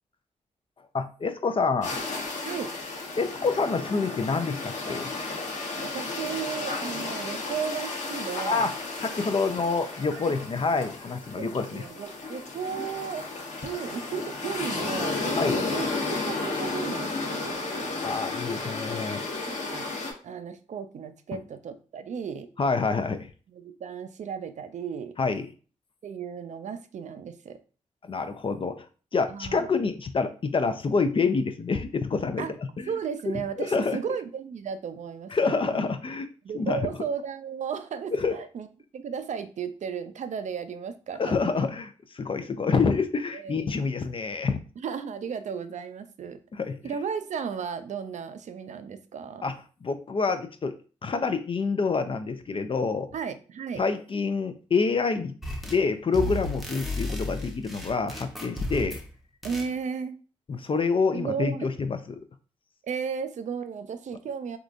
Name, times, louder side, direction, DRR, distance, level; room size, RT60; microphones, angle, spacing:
voice 1, 0.9-2.0 3.2-5.1 8.4-8.7 9.0-11.8 15.4-15.6 18.0-19.3 22.6-23.3 25.2-25.5 28.0-28.8 29.1-32.5 32.8-32.9 33.6-34.0 35.3-36.3 36.5-36.8 38.1-38.4 41.2-44.6 46.5-46.8 49.4-49.5 49.8-50.7 51.0-53.1 53.8-55.3 55.7-59.0 60.5-62.2, left 4 dB, 40° left, 9 dB, 0.4 m, -27 dB
sound 1, 1.8-20.1, left 3 dB, 65° left, 0.9 m, -33 dB
voice 2, 5.8-8.7 10.1-10.4 11.3-13.3 13.6-17.9 19.5-19.9 20.2-22.5 23.5-25.2 26.0-27.6 29.3-29.7 32.4-32.6 32.9-35.9 36.4-38.7 38.9-41.7 43.3-43.9 44.8-46.4 46.8-49.5 53.1-53.8 59.4-60.2 61.1-61.7 62.8-64.6, right 6 dB, 65° right, 10 dB, 0.4 m, -35 dB
sound 2, 55.4-55.9 56.1-59.1 59.4-59.7, left 1 dB, ahead, 0.8 m, -34 dB
3.7 x 2.3 x 2.5 m, 0.38 s
cardioid pair, 50°, 13 cm